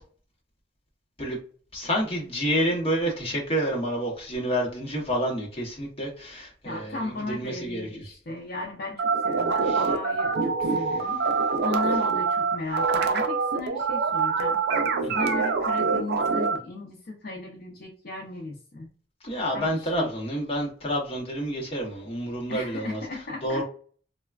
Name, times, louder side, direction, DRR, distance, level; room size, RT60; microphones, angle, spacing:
voice 1, 1.7-7.9 9.7-9.8 15.0-15.1 19.2-23.0 23.4-23.6, equal, 30° left, -2 dB, 0.9 m, -29 dB
voice 2, 6.6-14.6 15.1-18.9 19.5-20.1 22.5-23.6, left 2 dB, 55° left, -1 dB, 0.6 m, -36 dB
sound 1, 9.0-16.6, right 4 dB, 60° right, 0.4 m, -25 dB
3.2 x 2.1 x 2.3 m, 0.44 s
head